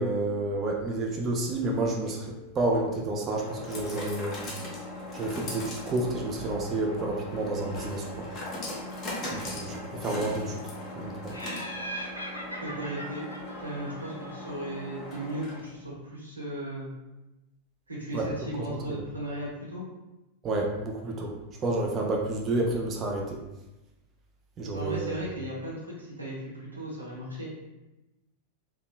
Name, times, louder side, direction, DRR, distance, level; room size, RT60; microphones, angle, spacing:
voice 1, 0.0-4.4 5.1-8.3 9.3-10.6 11.0-11.3 18.1-18.3 18.7-18.8 20.4-21.4 21.6-23.4 24.6-25.2, right 2 dB, 25° right, 0 dB, 0.4 m, -30 dB
sound 1, 1.9-15.8, left 1 dB, 30° left, 0.7 m, -39 dB
Laughter, 11.3-14.6, equal, 85° left, 0.3 m, -40 dB
voice 2, 12.4-13.3 13.6-16.9 17.9-19.9 24.7-27.5, right 1 dB, 80° right, -5 dB, 0.8 m, -36 dB
2.8 x 2.1 x 2.3 m, 1.0 s
figure-of-eight pair, 90°, 0 cm